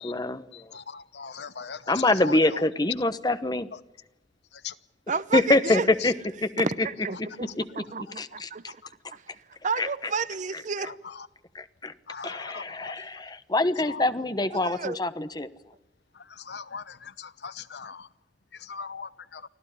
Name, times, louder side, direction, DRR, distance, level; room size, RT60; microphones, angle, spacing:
voice 1, 0.0-0.7 1.9-3.7 5.3-6.7 7.2-7.8 8.2-8.7 9.8-9.9 11.5-11.9 12.2-15.5, left 2 dB, 25° left, 1.1 m, -25 dB
voice 2, 0.7-2.4 4.6-4.7 12.1-12.9 13.9-14.0 16.4-18.1 18.6-19.4, left 5 dB, 70° left, 0.9 m, -39 dB
voice 3, 5.1-5.9 6.6-8.8 9.1-9.2 9.6-10.9 13.0-13.1 14.5-15.0, right 5 dB, 45° right, 0.8 m, -31 dB
25.0 x 15.5 x 9.8 m
head